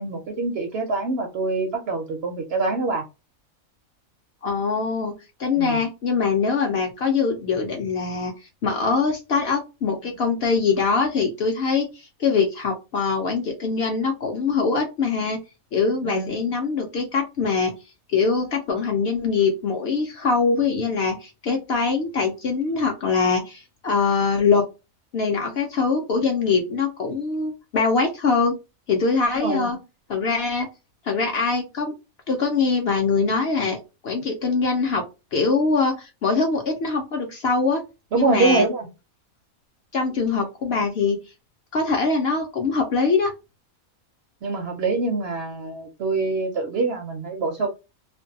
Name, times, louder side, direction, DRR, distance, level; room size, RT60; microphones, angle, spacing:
voice 1, 0.0-3.0 5.6-5.8 16.0-16.3 29.4-29.7 38.1-38.9 44.4-47.7, right 3 dB, 65° right, 3 dB, 0.6 m, -25 dB
voice 2, 4.4-5.1 5.4-15.4 15.7-17.7 18.1-24.7 25.1-28.5 28.9-29.8 30.1-30.7 31.0-31.9 32.3-35.0 35.3-37.8 38.1-38.7 39.9-41.2 41.7-43.3, left 4 dB, 60° left, 3 dB, 0.7 m, -23 dB
2.5 x 2.2 x 2.6 m, 0.27 s
omnidirectional pair, 1.5 m